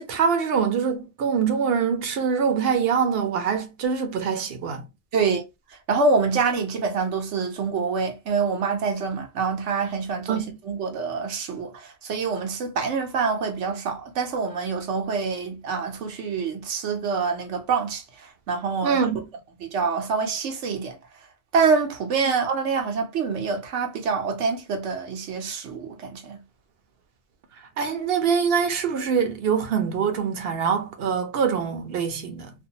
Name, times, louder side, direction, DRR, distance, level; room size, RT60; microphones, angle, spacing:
voice 1, 0.0-4.8 10.3-10.6 18.8-19.2 22.2-22.3 27.8-32.5, right 6 dB, 60° right, 0.8 m, -24 dB
voice 2, 5.1-5.4 5.9-18.0 18.5-19.0 19.6-21.0 21.5-26.4, right 5 dB, 85° right, 1.1 m, -26 dB
2.6 x 2.3 x 2.7 m
omnidirectional pair, 1.2 m